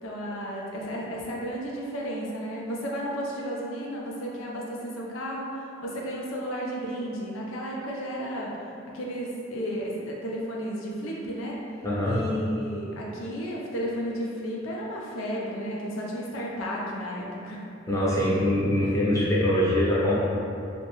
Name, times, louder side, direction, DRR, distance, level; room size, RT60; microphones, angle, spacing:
voice 1, 0.0-17.6 18.8-18.9, equal, 85° left, -3 dB, 0.5 m, -33 dB
voice 2, 11.8-12.2 17.9-20.1, left 1 dB, 15° left, -8 dB, 0.5 m, -23 dB
2.7 x 2.1 x 2.9 m, 2.7 s
head